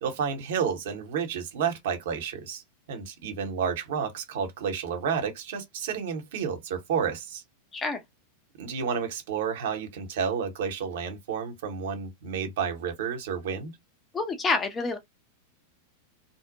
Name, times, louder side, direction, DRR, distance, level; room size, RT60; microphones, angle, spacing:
voice 1, 0.0-2.6 2.9-7.4 8.6-13.7, right 6 dB, 55° right, 0.8 m, -31 dB
voice 2, 14.1-15.0, left 3 dB, 20° left, 0.6 m, -27 dB
2.6 x 2.0 x 2.6 m
figure-of-eight pair, 90°, 0 cm